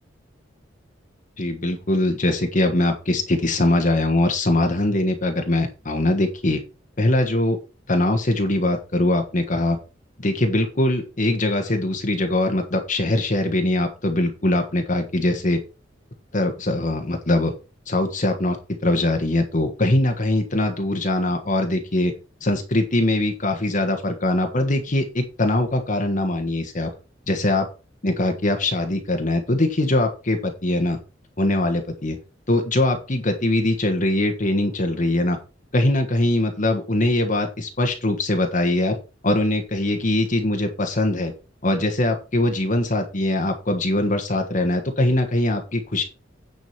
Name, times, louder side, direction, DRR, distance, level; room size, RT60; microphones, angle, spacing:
voice 1, 1.4-6.6 7.0-7.6 7.9-9.8 10.2-15.6 16.3-17.5 17.9-22.1 22.4-26.9 27.3-27.6 28.0-31.0 31.4-32.2 32.5-35.4 35.7-39.0 39.2-41.3 41.6-46.0, left 1 dB, 45° left, 4 dB, 1.5 m, -22 dB
9.4 x 5.2 x 5.9 m, 0.32 s
head